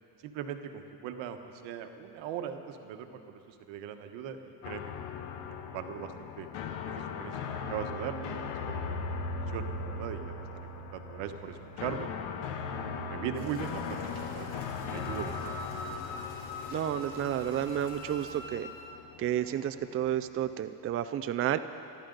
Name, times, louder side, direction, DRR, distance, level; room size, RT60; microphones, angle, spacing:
voice 1, 0.2-1.4 1.6-4.9 5.5-6.5 6.9-9.0 9.5-10.3 10.9-12.1 12.6-14.6 14.9-15.3, right 8 dB, 80° right, 6 dB, 1.3 m, -40 dB
sound 1, 4.6-20.6, left 4 dB, 90° left, 1.3 m, -39 dB
sound 2, 13.3-18.3, equal, 20° left, 3.6 m, -53 dB
Wind instrument woodwind instrument, 14.7-18.9, left 1 dB, 45° left, 2.1 m, -44 dB
voice 2, 16.7-18.7 19.2-21.6, right 11 dB, 35° right, 10 dB, 0.4 m, -31 dB
26.0 x 12.0 x 3.9 m, 2.8 s
cardioid pair, 115°, 44 cm